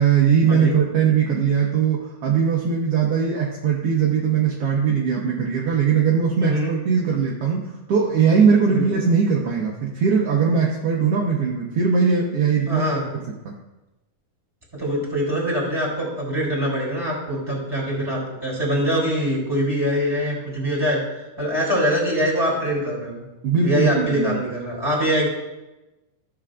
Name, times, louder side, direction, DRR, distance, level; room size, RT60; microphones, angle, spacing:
voice 1, 0.0-12.8 13.4-13.5 23.4-24.4, right 6 dB, 75° right, -2 dB, 1.4 m, -20 dB
voice 2, 6.4-6.7 8.7-8.8 12.6-13.1 14.7-23.2 23.6-25.3, equal, 10° right, -4 dB, 2.4 m, -23 dB
14.0 x 6.9 x 2.5 m, 1.0 s
omnidirectional pair, 3.8 m